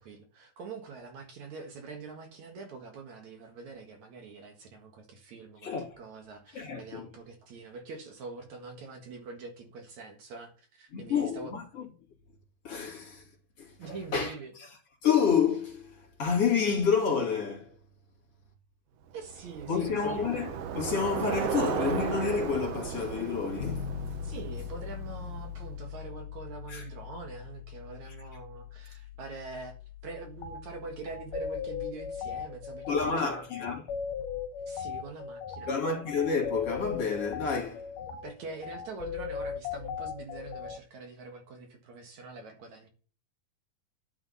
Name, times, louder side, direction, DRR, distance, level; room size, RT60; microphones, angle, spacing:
voice 1, 0.0-11.5 13.8-14.5 19.1-20.3 24.2-29.7 30.0-33.5 34.6-35.7 38.2-42.9, right 4 dB, 60° right, 2.8 m, -44 dB
voice 2, 5.6-6.0 6.5-7.1 10.9-11.8 12.6-13.3 13.6-14.7 15.0-17.8 19.7-23.9 26.7-26.9 28.0-28.2 32.9-33.8 35.7-37.9, left 6 dB, 45° left, 3.3 m, -29 dB
Bicycle, 19.2-25.7, right 8 dB, 90° right, 1.4 m, -35 dB
Bass guitar, 23.6-33.3, left 10 dB, 90° left, 3.2 m, -43 dB
sound 1, 30.4-30.6 31.1-40.8, left 7 dB, 70° left, 2.4 m, -38 dB
11.0 x 11.0 x 4.1 m
omnidirectional pair, 4.0 m